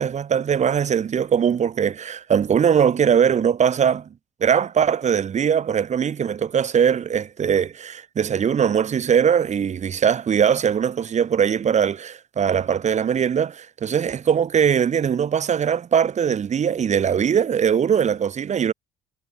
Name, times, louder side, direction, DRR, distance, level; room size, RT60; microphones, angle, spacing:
voice 1, 0.0-4.1 4.4-18.7, right 8 dB, 45° right, 4.6 m, -21 dB
cardioid pair, 110°, 17 cm